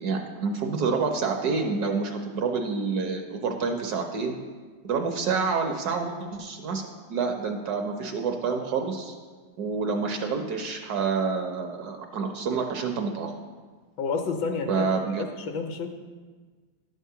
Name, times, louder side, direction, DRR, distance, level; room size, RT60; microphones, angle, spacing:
voice 1, 0.0-4.4 4.8-9.1 9.6-13.3 14.7-15.3, right 5 dB, 65° right, 4 dB, 1.1 m, -28 dB
voice 2, 14.0-14.9 15.1-15.9, left 4 dB, 70° left, 4 dB, 1.4 m, -30 dB
10.5 x 3.6 x 6.8 m, 1.5 s
omnidirectional pair, 2.0 m